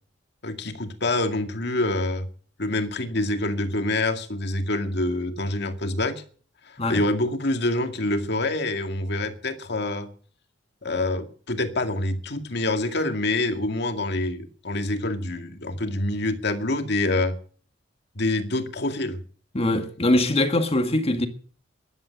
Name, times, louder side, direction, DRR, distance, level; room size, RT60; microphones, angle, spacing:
voice 1, 0.4-2.3 2.6-6.2 6.7-10.1 10.8-17.4 18.2-19.2, left 2 dB, 65° left, 2.1 m, -26 dB
voice 2, 19.5-21.3, left 1 dB, 35° left, 1.8 m, -22 dB
14.0 x 11.5 x 8.3 m
head